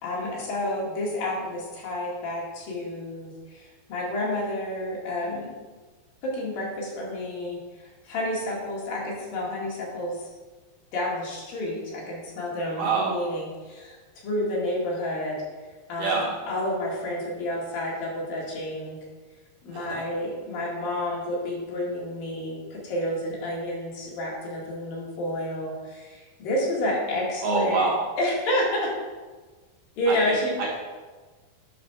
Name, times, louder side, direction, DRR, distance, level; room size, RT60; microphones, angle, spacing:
voice 1, 0.0-5.6 6.2-10.3 10.9-14.0 14.2-15.4 15.9-19.0 19.6-27.9 28.2-28.9 30.0-30.6, left 1 dB, 65° left, -4 dB, 3.5 m, -30 dB
voice 2, 12.8-13.2 16.0-16.3 19.7-20.0 27.4-28.0 30.1-30.2 30.6-30.7, right 4 dB, 65° right, -4 dB, 2.6 m, -25 dB
10.5 x 4.3 x 6.0 m, 1.3 s
omnidirectional pair, 4.5 m